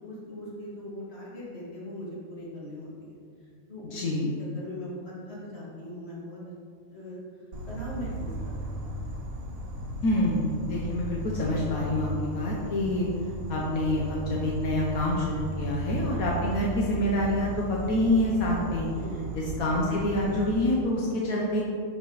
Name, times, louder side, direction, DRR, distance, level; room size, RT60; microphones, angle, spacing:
voice 1, 0.0-6.5 6.9-7.2 7.7-9.1 19.0-19.2, left 1 dB, 45° left, -6 dB, 2.4 m, -40 dB
voice 2, 3.8-4.4 10.0-13.1 13.5-18.9 19.3-21.6, left 1 dB, 80° left, -3 dB, 1.4 m, -27 dB
Insect, 7.5-20.5, right 1 dB, 75° right, 1.3 m, -36 dB
10.5 x 4.9 x 4.0 m, 2.3 s
omnidirectional pair, 1.5 m